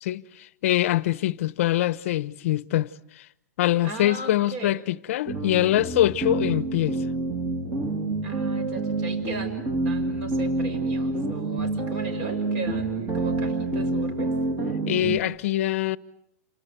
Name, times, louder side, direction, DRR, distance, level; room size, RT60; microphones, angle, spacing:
voice 1, 0.0-3.3 3.6-7.0 14.9-16.0, left 14 dB, 50° left, 1.1 m, -24 dB
voice 2, 3.8-4.7 8.2-14.3, right 3 dB, 35° right, 6.4 m, -37 dB
sound 1, 5.3-15.2, right 2 dB, 20° right, 3.1 m, -27 dB
28.5 x 25.5 x 8.1 m
hypercardioid pair, 160°, 9 cm